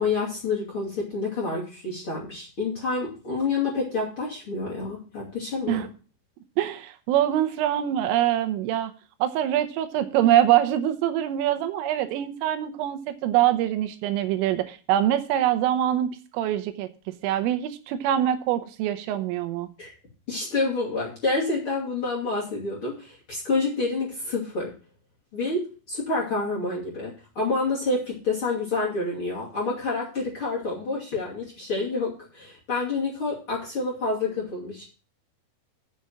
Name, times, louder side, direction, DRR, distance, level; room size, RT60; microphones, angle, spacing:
voice 1, 0.0-5.8 19.8-19.9 20.3-24.7 25.3-34.9, left 3 dB, 35° left, -5 dB, 2.4 m, -28 dB
voice 2, 6.6-8.9 9.2-16.9 17.2-19.7, right 12 dB, 80° right, 10 dB, 3.3 m, -24 dB
7.6 x 6.8 x 7.3 m, 0.36 s
omnidirectional pair, 5.9 m